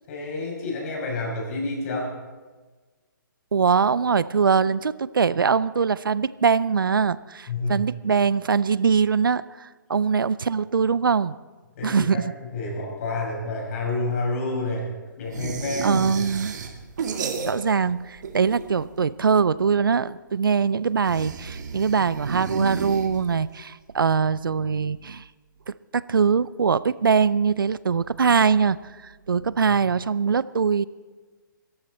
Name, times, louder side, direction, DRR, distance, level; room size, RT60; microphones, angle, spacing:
voice 1, 0.1-2.2 7.5-7.8 11.8-16.1 29.7-29.8, left 2 dB, 45° left, -1 dB, 6.7 m, -29 dB
voice 2, 3.5-11.4 11.8-12.2 15.8-16.5 17.4-25.2 25.7-28.8 29.0-30.8, right 6 dB, 85° right, 18 dB, 0.5 m, -22 dB
sound 1, 15.3-17.9 18.2-19.0 21.0-23.5, right 5 dB, 60° right, 1.9 m, -32 dB
19.0 x 14.5 x 4.3 m, 1.3 s
hypercardioid pair, 145°, 11 cm